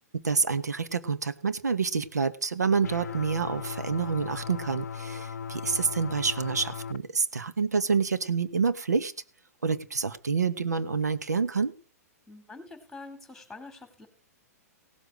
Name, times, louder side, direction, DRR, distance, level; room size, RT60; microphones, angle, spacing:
voice 1, 0.1-9.1 9.6-11.7, right 5 dB, 90° right, 12 dB, 1.2 m, -28 dB
sound 1, 2.8-7.0, left 6 dB, 80° left, 0.7 m, -37 dB
voice 2, 12.3-14.1, left 3 dB, 5° left, 9 dB, 3.7 m, -45 dB
17.5 x 8.1 x 6.1 m, 0.37 s
hypercardioid pair, 120°, 9 cm